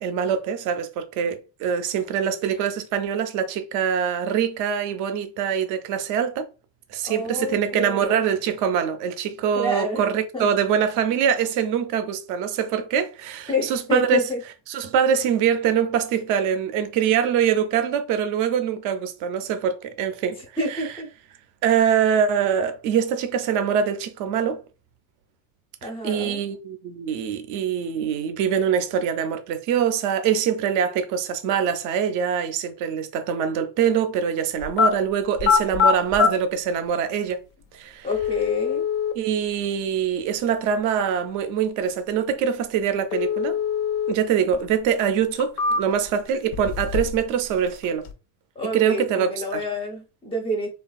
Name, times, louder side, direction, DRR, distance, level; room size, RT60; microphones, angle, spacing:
voice 1, 0.0-6.4 6.9-14.3 14.7-20.4 20.7-20.8 21.6-24.6 25.8-37.4 37.7-38.1 39.2-43.6 44.1-48.0 48.7-49.6, right 8 dB, 45° right, 0.4 m, -24 dB
voice 2, 7.0-8.2 9.6-10.0 10.3-10.5 13.5-14.4 20.6-21.1 25.8-26.4 38.0-38.8 48.6-50.7, left 1 dB, 15° left, 0.5 m, -28 dB
sound 1, 34.6-34.9 35.4-36.3 37.3-37.4 38.1-39.1 43.1-44.1 44.5-44.6 45.2-46.1 46.5-47.2 47.5-48.1, left 6 dB, 70° left, 0.7 m, -23 dB
3.3 x 2.3 x 2.3 m
cardioid pair, 170°, 43 cm